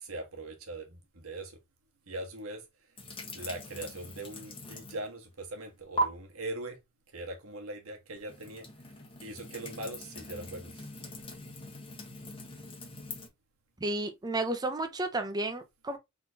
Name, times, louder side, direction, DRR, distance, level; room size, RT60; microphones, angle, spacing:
voice 1, 0.0-1.5 2.1-2.6 3.3-6.8 7.1-8.6 9.2-10.8, right 2 dB, 90° right, 1.4 m, -41 dB
sound 1, 3.0-5.1 5.4-6.0 8.2-13.3, equal, 25° left, 1.2 m, -40 dB
voice 2, 13.8-16.0, right 2 dB, 20° right, 0.6 m, -32 dB
4.3 x 3.8 x 2.7 m
head